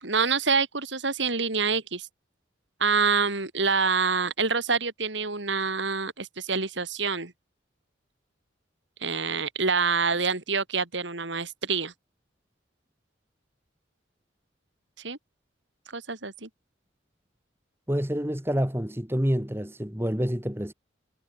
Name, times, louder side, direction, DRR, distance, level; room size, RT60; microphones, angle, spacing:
voice 1, 0.0-2.1 2.8-7.3 9.0-11.9 15.0-15.2 15.9-16.5, right 4 dB, 70° right, 2.9 m, -26 dB
voice 2, 17.9-20.7, equal, 10° right, 1.9 m, -27 dB
head